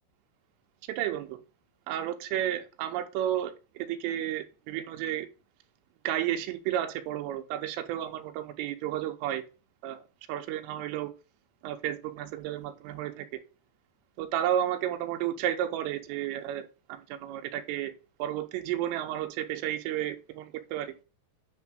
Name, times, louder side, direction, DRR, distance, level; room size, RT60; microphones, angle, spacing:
voice 1, 0.9-1.4 1.9-5.3 6.0-9.4 9.8-10.0 10.3-11.1 11.6-13.4 14.2-17.9 18.2-20.9, right 11 dB, 90° right, 3.4 m, -32 dB
9.8 x 3.6 x 6.1 m
omnidirectional pair, 5.7 m